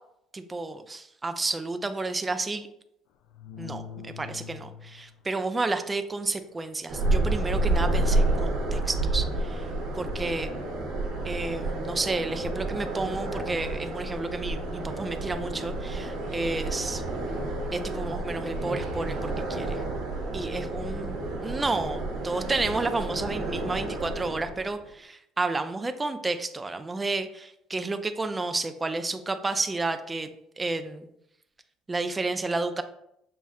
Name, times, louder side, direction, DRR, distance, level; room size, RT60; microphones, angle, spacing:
voice 1, 0.3-2.7 3.6-9.7 10.0-10.5 11.2-17.0 17.7-19.8 20.3-30.3 30.6-31.1 31.9-32.8, right 3 dB, 20° right, 9 dB, 0.4 m, -31 dB
sound 1, 3.2-5.3 7.9-8.0, left 7 dB, 75° left, 0.3 m, -43 dB
sound 2, 6.9-24.8, right 2 dB, 75° right, 1.1 m, -30 dB
5.6 x 2.1 x 3.5 m, 0.78 s
cardioid pair, 105°, 0 cm